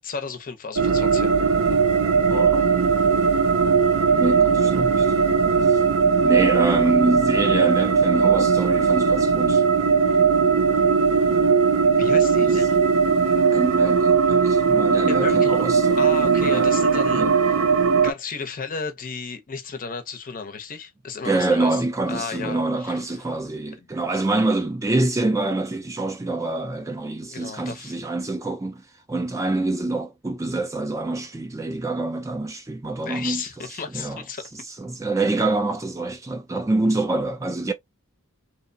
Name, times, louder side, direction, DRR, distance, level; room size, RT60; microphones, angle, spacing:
voice 1, 0.0-1.5 12.0-12.8 15.1-15.6 16.0-21.8 22.1-23.0 23.8-23.9 27.3-28.0 33.0-34.4, left 5 dB, 40° left, 0.6 m, -34 dB
sound 1, 0.8-18.1, right 5 dB, 65° right, 0.5 m, -19 dB
voice 2, 2.3-2.7 4.1-5.1 5.6-5.8 6.2-9.6 12.4-12.6 13.5-16.0 16.5-16.7 17.1-17.3 21.2-28.8 29.1-33.4 33.9-34.2 34.8-37.7, right 2 dB, 15° right, 0.3 m, -26 dB
2.8 x 2.1 x 2.6 m
head